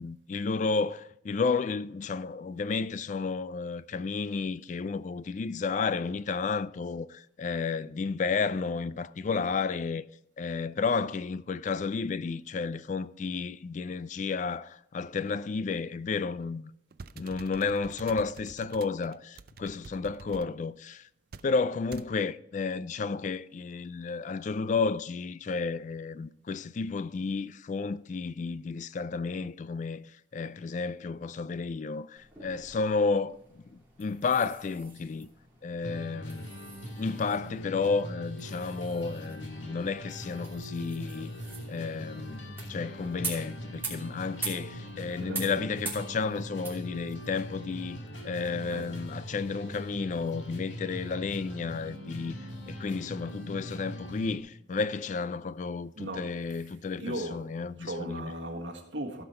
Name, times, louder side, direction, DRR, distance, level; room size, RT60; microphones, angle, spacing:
voice 1, 0.0-10.0 10.4-16.7 17.2-21.1 21.4-33.4 33.7-35.3 35.6-36.5 37.0-41.3 41.7-48.0 48.2-52.4 52.7-58.3, left 4 dB, 40° left, 0.3 m, -32 dB
sound 1, 16.9-20.5 21.3-21.5 21.9-22.1, right 4 dB, 55° right, 0.4 m, -47 dB
sound 2, 32.1-49.0, right 4 dB, 10° right, 2.8 m, -45 dB
sound 3, 35.8-54.4, equal, 90° left, 1.8 m, -41 dB
voice 2, 45.0-45.7 48.7-48.9 54.7-54.8 55.9-56.4 57.0-59.2, right 1 dB, 80° right, 1.4 m, -38 dB
15.5 x 6.0 x 4.4 m
head